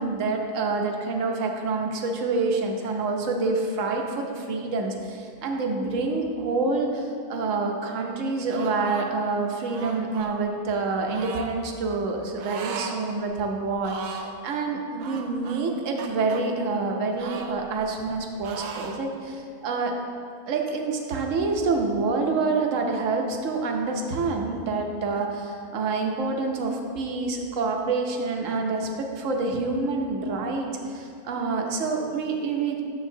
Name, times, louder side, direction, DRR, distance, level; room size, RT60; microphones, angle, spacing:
voice 1, 0.0-19.9 20.5-32.8, right 3 dB, 60° right, 2 dB, 1.1 m, -27 dB
sound 1, 8.5-9.1 9.6-10.3 11.1-11.5 12.4-13.0 13.3-13.4 13.8-14.3 15.0-16.4 17.2-18.2 18.4-19.0, right 5 dB, 80° right, 1.1 m, -37 dB
9.7 x 6.9 x 2.7 m, 2.3 s
omnidirectional pair, 1.6 m